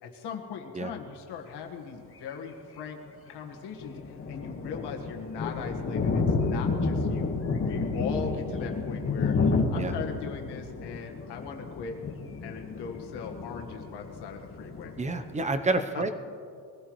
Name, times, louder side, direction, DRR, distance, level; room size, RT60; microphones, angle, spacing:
voice 1, 0.0-3.0 3.3-7.3 7.6-9.4 9.7-12.0 12.4-14.9 15.7-16.0, left 6 dB, 75° left, 2 dB, 1.8 m, -39 dB
sound 1, 3.8-15.4, left 4 dB, 30° left, 1.6 m, -30 dB
voice 2, 15.0-16.1, right 2 dB, 15° right, 9 dB, 0.8 m, -28 dB
22.5 x 15.5 x 3.2 m, 2.4 s
cardioid pair, 140°, 41 cm